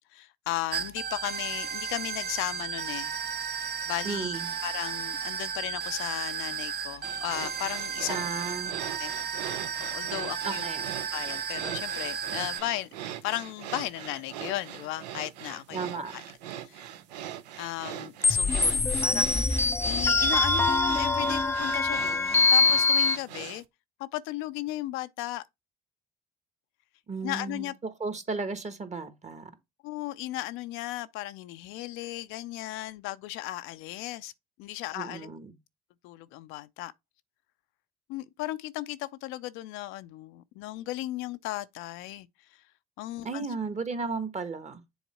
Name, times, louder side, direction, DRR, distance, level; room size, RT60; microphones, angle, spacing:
voice 1, 0.1-3.2 3.5-8.2 9.0-9.2 9.8-10.7 11.1-16.2 16.6-16.8 17.6-23.6 24.0-25.4 27.2-27.7 29.8-34.3 34.6-35.3 36.0-36.9 38.1-42.3 43.0-43.5, left 16 dB, 75° left, 0.5 m, -36 dB
sound 1, 0.7-12.6, right 7 dB, 55° right, 0.8 m, -34 dB
voice 2, 4.0-4.5 8.1-8.9 10.4-10.9 15.7-16.1 27.1-29.5 34.9-35.5 43.2-44.8, right 4 dB, 35° right, 1.4 m, -34 dB
sound 2, 7.0-23.6, right 11 dB, 90° right, 0.5 m, -41 dB
sound 3, 18.2-23.2, left 3 dB, 10° left, 0.5 m, -24 dB
7.1 x 3.5 x 4.2 m
hypercardioid pair, 55°, 21 cm